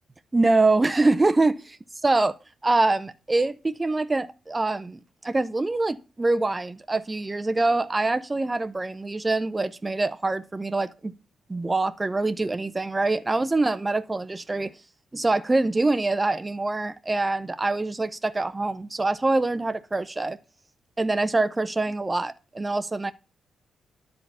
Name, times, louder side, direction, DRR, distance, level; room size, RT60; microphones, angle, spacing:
voice 1, 0.3-1.6 2.0-2.3 2.6-11.1 11.5-14.7 15.1-20.4 21.0-23.1, right 2 dB, 25° right, 0.7 m, -24 dB
10.0 x 4.0 x 5.6 m
hypercardioid pair, 45°, 0 cm